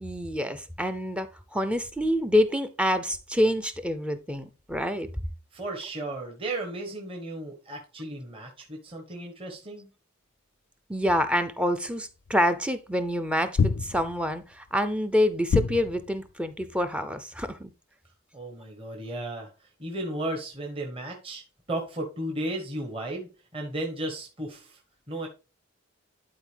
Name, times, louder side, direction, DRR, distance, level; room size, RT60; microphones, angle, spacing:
voice 1, 0.0-5.1 10.9-17.7, equal, 5° right, 0.5 m, -27 dB
voice 2, 5.5-9.9 18.3-21.4 21.7-24.8 25.1-25.3, right 1 dB, 25° right, 1.3 m, -35 dB
sound 1, 12.3-12.4 13.6-14.4 15.5-16.3, left 5 dB, 60° left, 0.3 m, -26 dB
11.5 x 4.4 x 3.4 m
head